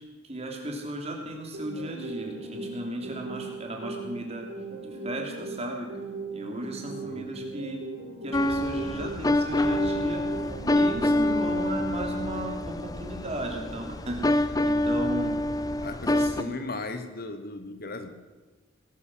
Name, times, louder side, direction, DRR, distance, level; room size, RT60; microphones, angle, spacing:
voice 1, 0.2-4.5 4.8-5.9 6.3-7.8 8.2-15.3 16.2-16.5, right 1 dB, 30° right, 1 dB, 3.1 m, -35 dB
sound 1, 1.5-11.5, right 3 dB, 65° right, 4.2 m, -38 dB
sound 2, 8.3-16.4, left 1 dB, 20° left, 0.5 m, -26 dB
voice 2, 15.8-18.1, left 2 dB, 45° left, 9 dB, 1.1 m, -36 dB
19.0 x 12.0 x 6.2 m, 1.3 s
head